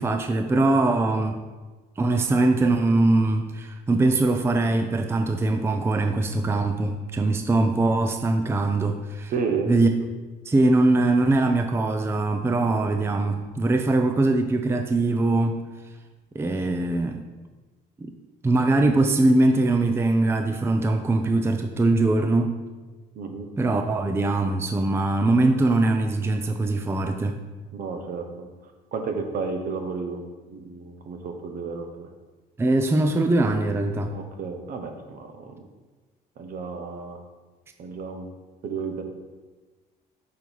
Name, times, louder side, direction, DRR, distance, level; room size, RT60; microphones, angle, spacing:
voice 1, 0.0-1.4 2.0-9.3 9.7-9.9 10.5-15.6 16.3-17.3 18.0-18.1 18.4-22.6 23.6-27.4 32.6-34.1, right 2 dB, 15° right, 6 dB, 0.5 m, -22 dB
voice 2, 9.3-9.7 23.1-23.5 27.7-28.5 28.9-30.2 30.5-32.1 34.1-35.6 36.4-37.2 37.8-38.3 38.6-39.0, right 5 dB, 60° right, 5 dB, 1.1 m, -32 dB
6.2 x 5.4 x 4.5 m, 1.3 s
cardioid pair, 110°, 17 cm